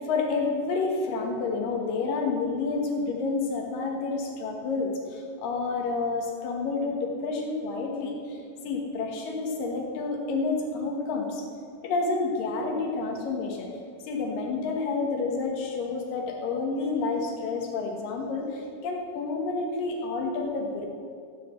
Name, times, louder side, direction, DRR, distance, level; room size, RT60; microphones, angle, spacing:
voice 1, 0.0-8.4 8.6-11.4 11.8-13.7 14.0-20.9, left 3 dB, 65° left, 1 dB, 2.8 m, -29 dB
14.5 x 6.3 x 7.8 m, 2.3 s
omnidirectional pair, 4.6 m